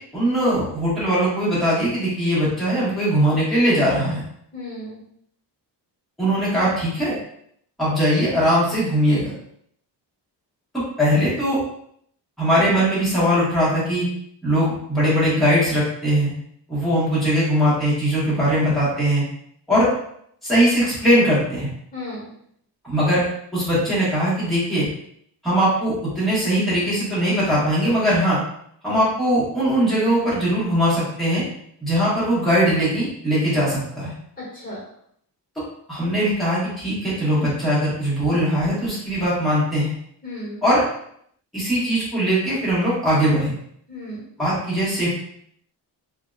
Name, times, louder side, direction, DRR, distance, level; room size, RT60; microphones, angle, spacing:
voice 1, 0.1-4.2 6.2-7.1 7.8-9.3 11.0-11.6 12.4-14.1 14.4-16.3 16.7-19.2 19.7-19.9 20.4-21.7 22.8-23.2 23.5-24.9 25.4-28.4 28.8-31.4 31.8-34.1 35.9-39.9 40.6-40.8 41.5-43.5 44.4-45.2, equal, ahead, -10 dB, 1.0 m, -20 dB
voice 2, 4.5-5.0 21.9-22.3 34.4-34.8 40.2-40.6 43.9-44.2, left 1 dB, 20° left, -6 dB, 1.3 m, -34 dB
2.6 x 2.1 x 2.3 m, 0.69 s
wide cardioid pair, 175°, 42 cm